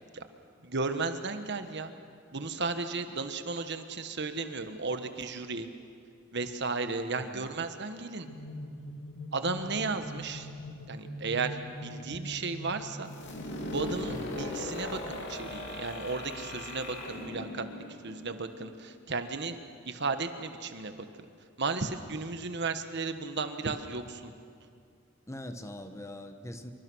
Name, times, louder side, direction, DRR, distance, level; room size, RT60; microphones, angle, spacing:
voice 1, 0.6-1.9 2.3-5.7 6.3-8.3 9.3-10.5 10.9-13.1 13.7-17.6 18.0-19.6 19.8-21.0 21.6-24.3, right 4 dB, 55° right, 8 dB, 1.4 m, -34 dB
voice 2, 7.2-7.5 14.1-14.3 25.3-26.7, left 1 dB, 15° left, 7 dB, 1.1 m, -42 dB
sound 1, 8.3-13.9, equal, 85° left, 2.0 m, -43 dB
sound 2, 13.1-18.8, left 1 dB, 60° left, 3.1 m, -39 dB
26.0 x 24.0 x 6.3 m, 2.3 s
head